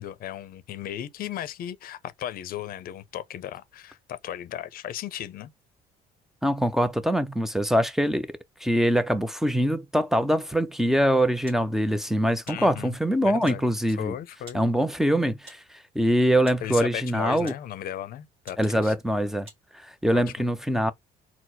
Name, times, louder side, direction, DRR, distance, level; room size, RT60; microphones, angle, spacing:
voice 1, 0.0-5.5 12.5-13.0 13.2-13.6 14.0-14.6 16.6-18.9 20.1-20.2, left 11 dB, 60° left, 0.6 m, -35 dB
voice 2, 6.4-8.3 8.6-14.1 14.5-17.5 18.6-19.5 19.7-20.9, equal, ahead, 0.5 m, -23 dB
sound 1, 11.5-11.7 12.5-12.7 13.5-13.7 14.5-14.7 15.5-15.7 16.5-16.7 17.4-17.7 18.5-18.7 19.5-19.6, right 2 dB, 35° right, 1.8 m, -48 dB
4.4 x 2.0 x 4.0 m
cardioid pair, 110°, 17 cm